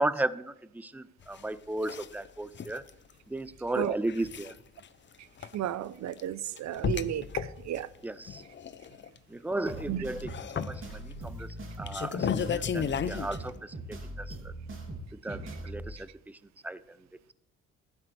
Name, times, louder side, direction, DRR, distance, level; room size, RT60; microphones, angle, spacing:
voice 1, 0.0-2.8 3.3-4.5 8.0-8.4 9.3-14.5 15.1-16.4 16.6-17.0, right 2 dB, 5° right, 0.5 m, -35 dB
sound 1, 1.2-1.4 1.9-2.3 2.5-2.9 4.0-4.6 4.8-4.9 5.4-5.5 6.1-6.2 6.6-7.8 8.2-9.2 9.5-9.8 10.2-11.2 11.6-13.4, left 7 dB, 40° left, 0.7 m, -33 dB
voice 2, 5.5-7.9 9.9-10.0, right 11 dB, 65° right, 0.7 m, -33 dB
sound 2, 9.7-15.9, right 1 dB, 45° right, 2.8 m, -41 dB
14.5 x 11.5 x 3.3 m
cardioid pair, 90°, 30 cm